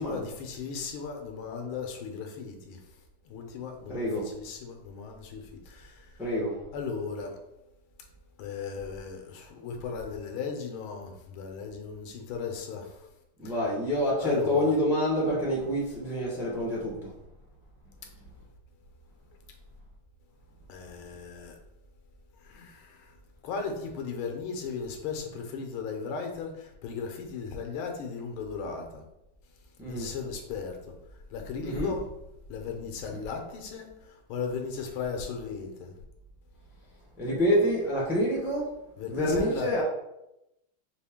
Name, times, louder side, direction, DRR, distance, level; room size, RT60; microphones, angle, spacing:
voice 1, 0.0-2.8 3.2-6.1 6.7-7.3 8.4-13.1 13.4-13.5 14.2-14.8 20.7-21.5 22.4-23.1 23.4-29.0 29.9-30.9 31.3-32.1 32.5-35.9 39.0-39.8, left 5 dB, 85° left, 3 dB, 1.6 m, -36 dB
voice 2, 3.9-4.2 6.2-6.6 13.4-16.9 29.8-30.1 31.6-31.9 37.2-38.6 39.1-39.8, equal, 5° right, -4 dB, 0.5 m, -27 dB
5.2 x 2.5 x 3.5 m, 0.88 s
omnidirectional pair, 2.2 m